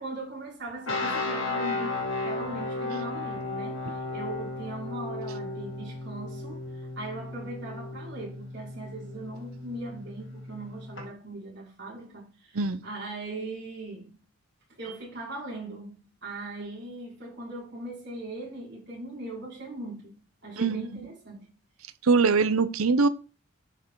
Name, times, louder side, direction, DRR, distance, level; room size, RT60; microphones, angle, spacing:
voice 1, 0.0-14.2 14.8-21.5, right 2 dB, 50° right, 4.9 m, -39 dB
sound 1, 0.9-11.0, left 2 dB, 60° left, 2.2 m, -35 dB
voice 2, 22.0-23.1, right 4 dB, 80° right, 0.7 m, -22 dB
10.5 x 5.5 x 3.8 m
head